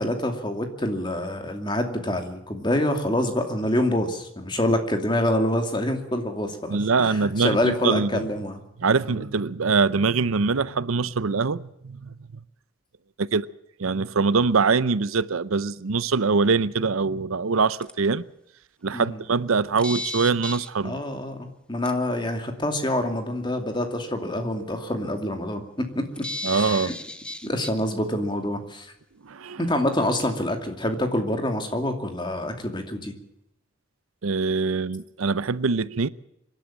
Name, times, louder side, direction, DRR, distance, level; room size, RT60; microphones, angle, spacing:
voice 1, 0.0-8.6 9.1-9.2 18.9-19.2 20.8-26.9 27.4-28.9 29.6-33.1, left 1 dB, 20° left, 2.6 m, -26 dB
voice 2, 6.7-8.2 8.8-12.1 13.3-13.5 13.8-18.2 18.8-21.0 26.4-26.9 29.2-29.6 34.2-36.1, right 4 dB, 85° right, 0.7 m, -23 dB
sound 1, 17.8-17.9 19.8-20.7 21.9-22.0 26.2-27.8, left 1 dB, 5° left, 1.0 m, -33 dB
25.5 x 12.0 x 8.9 m
head